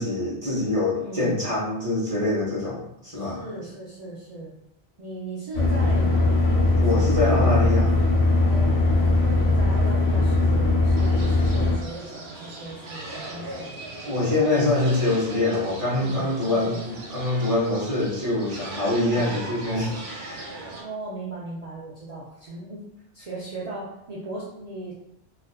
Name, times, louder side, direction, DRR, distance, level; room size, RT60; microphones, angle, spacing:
voice 1, 0.0-3.5 6.8-7.9 14.1-19.9 20.2-20.6, left 2 dB, 35° right, -8 dB, 0.8 m, -24 dB
voice 2, 0.9-1.5 3.1-4.5 5.0-7.9 8.5-13.7 15.9-16.8 20.8-22.8 23.1-24.9, right 2 dB, 50° right, -7 dB, 0.5 m, -38 dB
sound 1, 5.5-11.8, left 2 dB, 90° left, 0.9 m, -20 dB
sound 2, 11.0-20.8, right 2 dB, 80° right, 0.8 m, -38 dB
2.4 x 2.3 x 2.2 m, 0.80 s
omnidirectional pair, 1.1 m